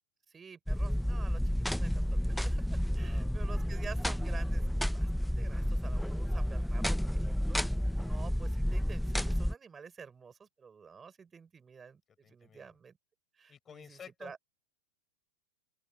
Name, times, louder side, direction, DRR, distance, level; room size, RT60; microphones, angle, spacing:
voice 1, 0.3-7.6 8.1-13.0 13.4-14.4, right 6 dB, 20° right, 6.7 m, -50 dB
sound 1, 0.7-9.5, equal, ahead, 0.8 m, -31 dB
voice 2, 3.0-3.3 8.0-8.2 12.2-12.8 13.5-14.5, left 7 dB, 20° left, 6.5 m, -53 dB
open air
figure-of-eight pair, 90°, 0 cm